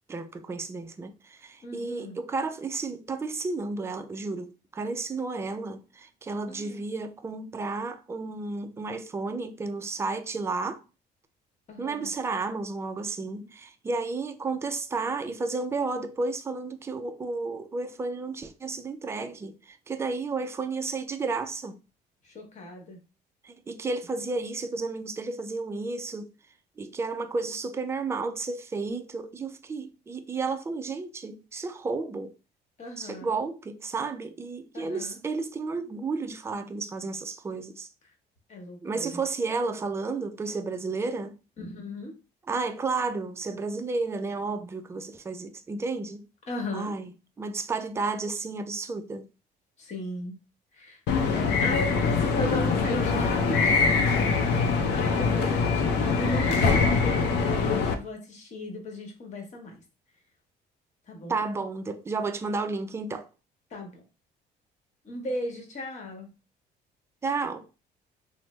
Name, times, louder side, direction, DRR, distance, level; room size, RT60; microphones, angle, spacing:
voice 1, 0.1-10.8 11.8-21.8 23.4-26.3 26.8-32.3 33.0-37.9 38.8-41.3 42.5-46.2 46.7-47.1 47.4-49.2 61.3-63.3 67.2-67.7, right 3 dB, 15° right, 0.3 m, -32 dB
voice 2, 1.6-2.2 6.5-6.8 11.7-12.1 22.2-23.0 32.8-33.3 34.7-35.2 38.5-39.2 41.6-42.1 46.5-46.9 49.8-50.4 50.7-54.2 54.8-59.8 61.1-61.4 63.7-64.0 65.0-66.3, left 1 dB, 45° left, 1.1 m, -36 dB
sound 1, 51.1-57.9, left 4 dB, 85° left, 0.5 m, -23 dB
3.2 x 2.0 x 3.1 m
cardioid pair, 110°, 17 cm